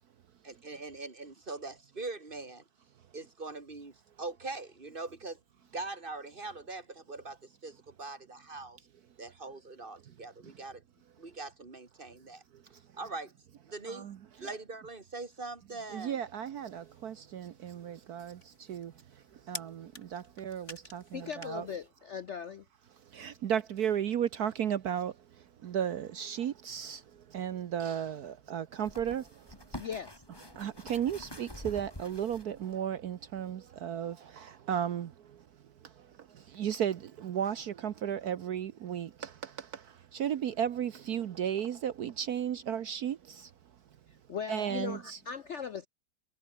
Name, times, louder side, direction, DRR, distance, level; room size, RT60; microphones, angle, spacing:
voice 1, 0.4-2.6 3.1-5.4 5.7-8.8 9.2-10.8 11.2-12.4 13.0-13.3 13.7-14.1 14.4-16.2, right 3 dB, 30° right, 2.5 m, -42 dB
voice 2, 13.9-14.5 15.9-21.7 23.1-29.5 30.5-35.4 35.8-43.5 44.5-45.2, right 9 dB, 65° right, 1.3 m, -35 dB
sound 1, 16.5-21.9, left 2 dB, 40° left, 7.0 m, -50 dB
voice 3, 21.1-22.6 29.8-30.2 44.1-45.9, left 7 dB, 55° left, 0.8 m, -39 dB
sound 2, 27.0-27.1 28.7-32.8 33.4-33.5, left 1 dB, 15° left, 3.9 m, -47 dB
omnidirectional pair, 1.9 m